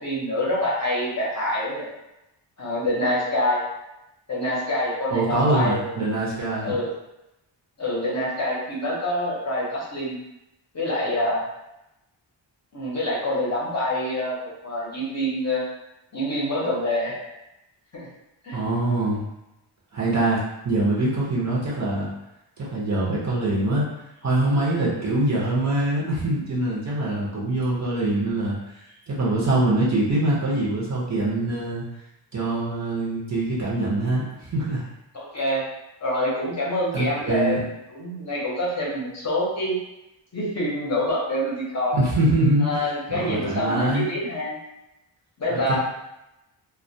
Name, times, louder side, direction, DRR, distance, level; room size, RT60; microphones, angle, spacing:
voice 1, 0.0-1.9 2.6-3.6 4.3-5.8 6.6-6.9 7.8-10.2 10.7-11.4 12.7-15.6 16.1-17.1 18.4-18.6 35.1-35.6 36.0-37.6 37.9-39.8 40.3-42.0 42.6-44.6 45.4-45.8, left 1 dB, 35° left, -6 dB, 0.7 m, -26 dB
voice 2, 5.1-6.8 18.5-19.3 19.9-22.1 22.6-23.9 24.2-28.8 29.1-31.9 32.3-34.8 36.9-37.6 41.9-44.0 45.5-45.8, right 2 dB, 40° right, -6 dB, 0.6 m, -24 dB
2.2 x 2.1 x 2.6 m, 0.90 s
wide cardioid pair, 155°, 45 cm